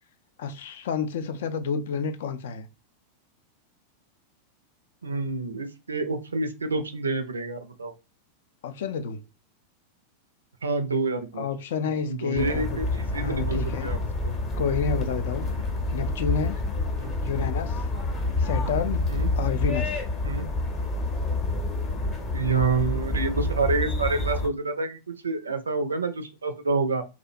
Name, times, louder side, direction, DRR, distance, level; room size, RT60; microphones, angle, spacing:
voice 1, 0.4-2.7 8.6-9.2 11.4-12.8 13.1-13.9 14.6-15.5 15.9-16.6 17.2-17.8 18.4-19.1 19.4-20.0, left 6 dB, 55° left, 0.3 m, -29 dB
voice 2, 5.0-7.9 10.6-11.5 12.0-14.0 14.2-14.3 17.0-17.2 19.1-19.3 20.2-20.5 22.3-27.1, right 3 dB, 75° right, 0.4 m, -28 dB
sound 1, 12.3-24.5, left 2 dB, 25° left, 0.7 m, -28 dB
2.5 x 2.0 x 2.5 m
figure-of-eight pair, 90°, 0 cm